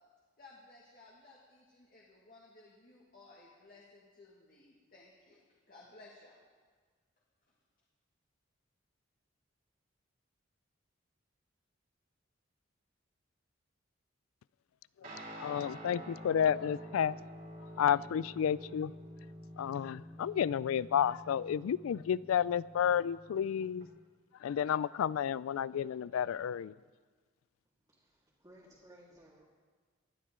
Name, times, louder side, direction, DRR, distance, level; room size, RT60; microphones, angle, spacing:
voice 1, 0.4-5.4 5.7-6.4 7.5-7.6, left 2 dB, 45° left, -4 dB, 2.0 m, -58 dB
Guitar, 15.0-23.8, equal, 45° right, 2.8 m, -49 dB
voice 2, 15.4-17.2 17.8-18.9 19.6-23.9 24.4-26.7, left 8 dB, 90° left, 20 dB, 0.3 m, -31 dB
voice 3, 27.9-29.4, right 1 dB, 20° right, -7 dB, 2.0 m, -59 dB
19.5 x 12.0 x 3.7 m, 1.5 s
head